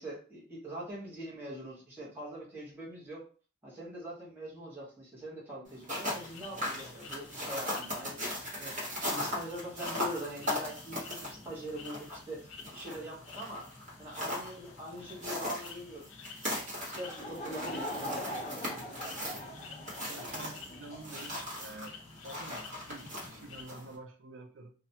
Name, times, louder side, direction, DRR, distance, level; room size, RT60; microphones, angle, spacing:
voice 1, 0.0-3.2 3.6-8.8 9.0-13.7 14.0-16.1 16.8-18.7, right 1 dB, 10° right, 0.8 m, -43 dB
sound 1, 5.7-23.9, left 1 dB, 40° right, 0.9 m, -39 dB
sound 2, 6.0-23.7, left 5 dB, 80° left, 0.4 m, -52 dB
Laughter / Crowd, 17.0-21.2, equal, 35° left, 0.6 m, -41 dB
voice 2, 20.1-22.0 22.2-24.7, right 2 dB, 65° right, 0.4 m, -48 dB
2.3 x 2.1 x 2.7 m
head